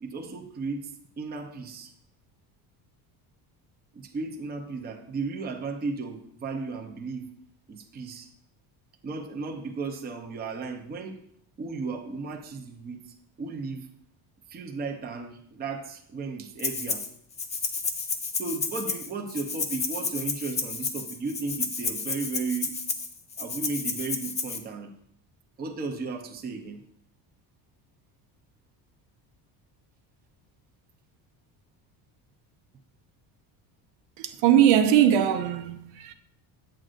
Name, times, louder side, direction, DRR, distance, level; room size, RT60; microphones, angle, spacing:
voice 1, 0.0-0.9 1.2-1.9 3.9-7.3 7.7-8.3 9.0-11.2 11.6-13.9 14.5-17.0 18.4-22.8 23.4-24.9 25.6-26.8, right 4 dB, 20° right, 0.7 m, -35 dB
Rattle (instrument), 16.6-17.1 17.4-24.6, left 4 dB, 15° left, 0.3 m, -31 dB
voice 2, 34.2-36.1, right 10 dB, 80° right, 0.9 m, -21 dB
8.7 x 7.7 x 2.5 m
cardioid pair, 165°, 43 cm